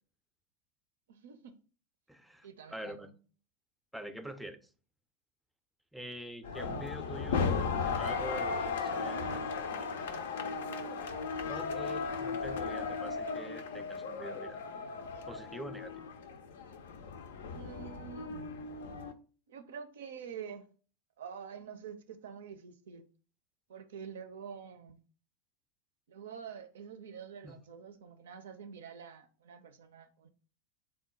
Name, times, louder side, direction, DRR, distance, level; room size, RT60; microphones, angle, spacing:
voice 1, 1.1-1.6 2.4-3.1 17.5-18.4 19.5-20.7 21.2-23.1 23.7-25.0 26.1-30.3, right 7 dB, 65° right, 0.5 m, -47 dB
voice 2, 2.1-3.1 3.9-4.6 5.9-9.4 11.5-14.6 15.3-16.1 27.4-27.6, equal, ahead, 0.5 m, -45 dB
sound 1, 6.4-19.1, left 5 dB, 65° left, 0.4 m, -36 dB
3.7 x 2.2 x 4.4 m
figure-of-eight pair, 85°, 0 cm